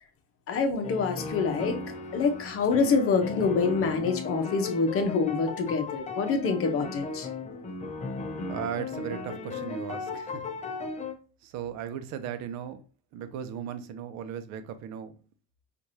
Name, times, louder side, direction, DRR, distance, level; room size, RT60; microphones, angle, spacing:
voice 1, 0.5-1.8 2.1-7.3, left 4 dB, 45° left, 0.9 m, -26 dB
sound 1, 0.8-11.1, left 3 dB, 25° left, 0.6 m, -36 dB
voice 2, 8.5-10.4 11.4-12.8 13.1-15.1, right 8 dB, 65° right, 0.7 m, -37 dB
4.6 x 2.6 x 2.7 m
supercardioid pair, 100°, 30 cm